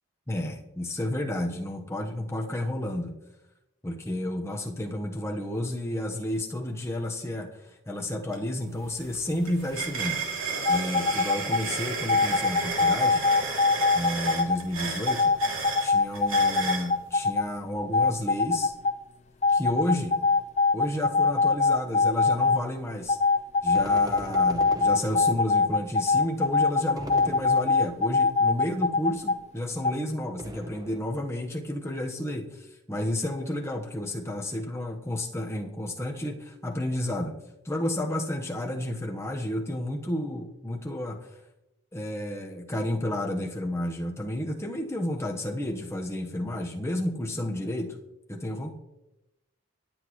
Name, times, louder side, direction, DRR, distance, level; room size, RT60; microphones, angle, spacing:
voice 1, 0.3-3.2 3.8-10.2 10.7-13.3 13.9-15.4 15.8-18.7 19.5-20.2 20.7-23.2 23.6-37.4 37.6-41.3 41.9-48.0 48.3-48.7, left 1 dB, 10° left, 2 dB, 1.1 m, -31 dB
sound 1, 8.3-8.4 8.7-16.9, right 4 dB, 65° right, 2.7 m, -33 dB
sound 2, 10.6-11.6 12.1-14.6 15.1-17.4 17.8-18.9 19.4-22.6 23.1-29.4 29.8-29.9, left 4 dB, 30° left, 0.8 m, -23 dB
sound 3, 23.7-25.7 27.0-28.2 30.4-31.4, right 1 dB, 15° right, 0.8 m, -41 dB
24.0 x 8.4 x 3.1 m, 0.94 s
head